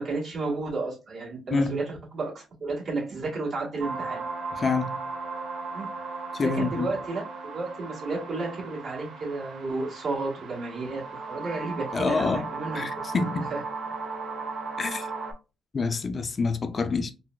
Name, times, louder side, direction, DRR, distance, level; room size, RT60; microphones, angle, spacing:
voice 1, 0.0-4.2 5.7-5.9 6.4-7.2 7.5-12.9 13.2-13.6, right 3 dB, 55° right, 1.7 m, -32 dB
sound 1, 3.8-15.3, right 4 dB, 75° right, 0.8 m, -36 dB
voice 2, 4.5-5.0 6.3-6.9 11.9-12.5 12.7-13.4 14.8-15.1 15.7-17.1, left 4 dB, 40° left, 0.4 m, -27 dB
4.3 x 2.1 x 2.3 m
cardioid pair, 90°, 0 cm